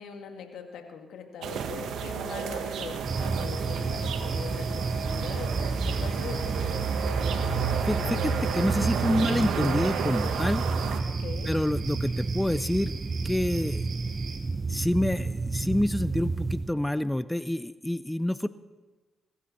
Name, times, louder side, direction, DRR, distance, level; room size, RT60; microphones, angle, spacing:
voice 1, 0.0-7.4 11.1-11.5, left 6 dB, 80° left, 4 dB, 2.2 m, -42 dB
sound 1, 1.4-11.0, right 6 dB, 80° right, 1.3 m, -31 dB
sound 2, 3.0-16.7, right 3 dB, 40° right, 0.8 m, -31 dB
sound 3, 3.1-14.4, right 5 dB, 60° right, 2.8 m, -44 dB
voice 2, 7.8-10.7 11.5-12.9 13.2-13.8 14.7-18.5, left 1 dB, 10° left, 15 dB, 0.5 m, -27 dB
22.0 x 14.0 x 4.4 m, 1.2 s
supercardioid pair, 65°, 0 cm